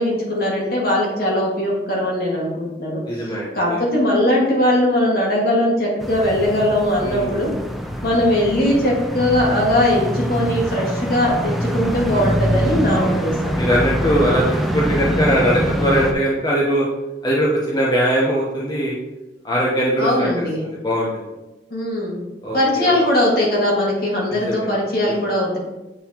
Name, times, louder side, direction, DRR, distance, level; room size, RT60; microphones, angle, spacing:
voice 1, 0.0-7.5 8.0-13.5 20.0-20.6 21.7-22.2 22.5-25.6, left 1 dB, 60° left, -3 dB, 1.7 m, -20 dB
voice 2, 3.1-3.8 7.0-7.4 12.1-12.2 12.9-13.2 13.5-14.4 14.7-16.9 17.2-19.0 19.4-21.2 22.4-22.9 24.3-24.7 25.1-25.2, equal, 25° left, -5 dB, 0.8 m, -21 dB
sound 1, 6.0-16.1, equal, ahead, 0.4 m, -24 dB
8.5 x 4.0 x 2.8 m, 1.0 s
head